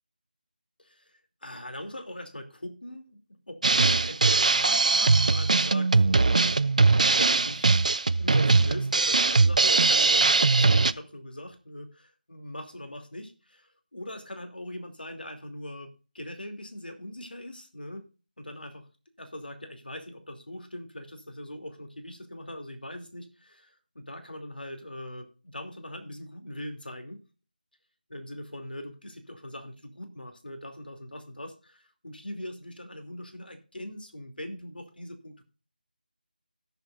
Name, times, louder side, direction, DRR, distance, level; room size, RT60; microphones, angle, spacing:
voice 1, 0.8-6.6 7.2-7.7 8.0-18.1 18.4-18.9 19.2-27.2 28.1-35.4, left 1 dB, 85° left, 6 dB, 2.8 m, -41 dB
Drum kit, 3.6-10.9, right 3 dB, 50° right, 0.4 m, -21 dB
17.0 x 7.1 x 2.5 m, 0.35 s
figure-of-eight pair, 165°, 5 cm